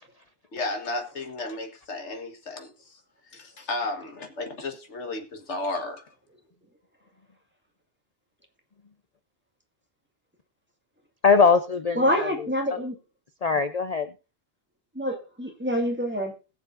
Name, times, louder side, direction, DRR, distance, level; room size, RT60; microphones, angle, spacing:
voice 1, 0.5-3.0 3.3-6.0, left 2 dB, 85° left, 1.9 m, -33 dB
voice 2, 11.2-12.8 13.4-14.1, left 5 dB, 40° left, 0.7 m, -22 dB
voice 3, 12.0-13.0 15.0-16.3, equal, 10° right, 2.1 m, -26 dB
21.0 x 7.3 x 2.6 m
omnidirectional pair, 1.2 m